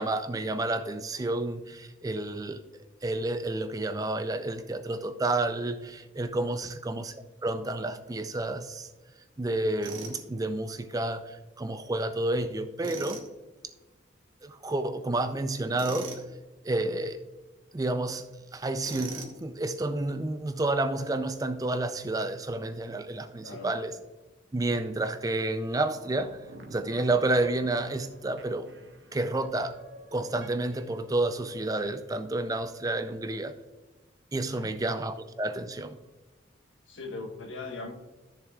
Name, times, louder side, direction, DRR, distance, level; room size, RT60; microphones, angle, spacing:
voice 1, 0.0-2.6 3.0-7.2 7.4-8.9 9.4-13.2 14.4-16.1 16.6-17.2 17.7-18.3 18.5-23.9 24.5-26.4 26.7-28.7 29.1-29.8 30.1-33.6 34.3-36.0, right 2 dB, 20° right, 0.4 m, -30 dB
Tools, 9.8-10.2 12.8-13.3 15.8-16.3 18.8-19.4, right 2 dB, 80° right, 1.6 m, -39 dB
voice 2, 23.4-23.7 34.5-34.7 36.9-37.9, left 3 dB, 75° left, 1.3 m, -40 dB
sound 1, 25.9-31.0, right 2 dB, 65° right, 1.3 m, -50 dB
13.5 x 6.7 x 2.4 m
head